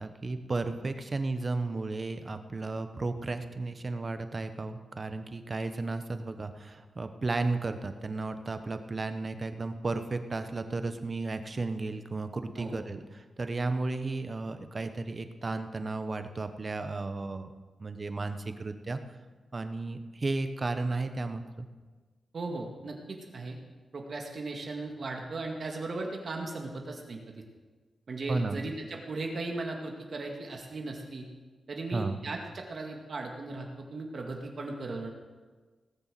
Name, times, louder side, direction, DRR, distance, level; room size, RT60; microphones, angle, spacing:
voice 1, 0.0-17.5 17.8-19.0 19.5-21.7 28.3-28.6 31.9-32.2, right 3 dB, 35° right, 9 dB, 1.0 m, -34 dB
voice 2, 22.3-23.6 23.9-27.4 28.1-31.3 31.7-35.1, right 3 dB, 50° right, 2 dB, 2.0 m, -37 dB
18.0 x 7.0 x 7.6 m, 1.3 s
wide cardioid pair, 115°, 0 cm